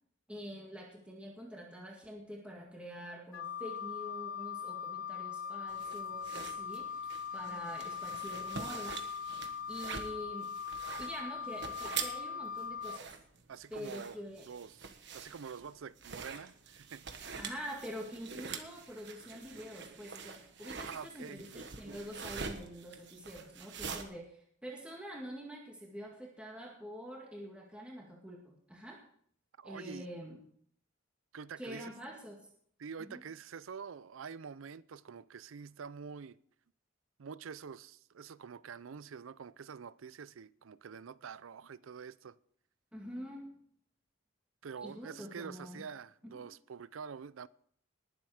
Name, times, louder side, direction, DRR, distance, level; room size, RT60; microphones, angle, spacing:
voice 1, 0.3-9.0 9.7-10.5 11.0-13.1 13.7-14.5 17.2-29.0 29.6-30.4 31.6-32.4 33.0-33.2 42.9-43.5 44.8-45.8 46.2-46.4, equal, 5° right, 2.0 m, -46 dB
Wind instrument woodwind instrument, 3.3-13.0, left 7 dB, 80° left, 0.6 m, -40 dB
sound 1, 5.7-24.0, right 6 dB, 60° right, 1.4 m, -45 dB
voice 2, 13.5-14.2 14.5-14.9 15.1-17.0 20.8-21.4 29.6-30.1 31.3-31.9 32.8-36.4 37.2-42.4 44.6-47.5, right 6 dB, 85° right, 0.5 m, -46 dB
20.0 x 7.6 x 4.9 m
head